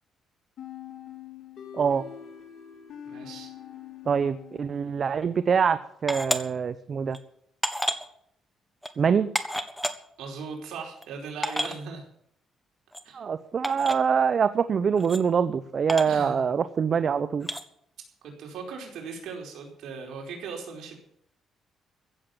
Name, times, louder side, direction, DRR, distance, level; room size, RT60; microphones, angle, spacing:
sound 1, 0.6-5.2, left 9 dB, 65° left, 4.2 m, -44 dB
voice 1, 1.7-2.0 4.1-7.2 9.0-9.3 13.1-17.5, right 6 dB, 50° right, 13 dB, 0.8 m, -24 dB
voice 2, 3.0-3.5 10.2-12.1 13.0-13.2 16.0-16.4 18.2-21.0, right 5 dB, 80° right, 1 dB, 4.7 m, -38 dB
sound 2, 6.1-6.4 7.1-7.2 7.6-8.0 8.8-8.9 9.3-9.9 10.8-10.9 11.0-11.1 11.4-11.7 12.9-13.0 13.6-14.0 15.0-15.2 15.9-16.2 17.4-17.6, equal, ahead, 1.5 m, -30 dB
15.5 x 7.6 x 9.3 m, 0.69 s
cardioid pair, 90°, 0 cm